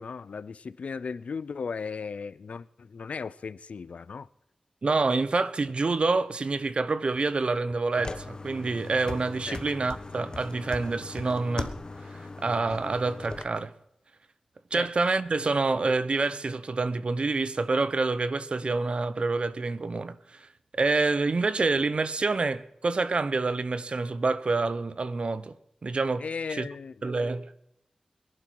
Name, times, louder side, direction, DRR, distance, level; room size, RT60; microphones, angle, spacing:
voice 1, 0.0-4.3 9.5-9.6 14.7-14.9 15.4-15.5 26.2-27.1, left 5 dB, 80° left, 0.5 m, -36 dB
voice 2, 4.8-11.7 12.0-13.7 14.7-20.5 20.7-25.6 25.8-26.2 26.5-26.7 27.0-27.5, right 3 dB, 55° right, 0.9 m, -27 dB
sound 1, 8.0-13.4, left 3 dB, 40° left, 1.2 m, -39 dB
22.5 x 11.5 x 4.7 m
wide cardioid pair, 85°, 2 cm